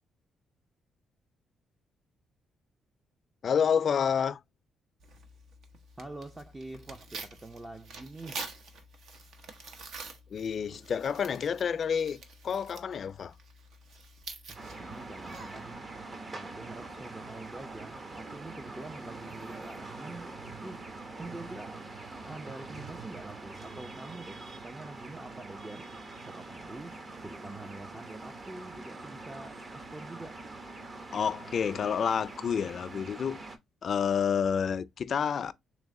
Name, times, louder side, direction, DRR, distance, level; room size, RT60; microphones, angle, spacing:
voice 1, 3.4-4.4 10.3-13.3 31.1-33.4 33.8-35.5, left 7 dB, 55° left, 0.4 m, -29 dB
Tearing, 5.0-15.7, right 3 dB, 70° right, 0.8 m, -47 dB
voice 2, 6.0-8.4 10.7-10.8 14.5-15.8 16.3-21.8 22.3-30.4, right 2 dB, 20° right, 0.4 m, -46 dB
sound 1, 14.5-33.6, right 3 dB, 35° right, 0.8 m, -44 dB
3.4 x 3.0 x 3.6 m
cardioid pair, 90°, 0 cm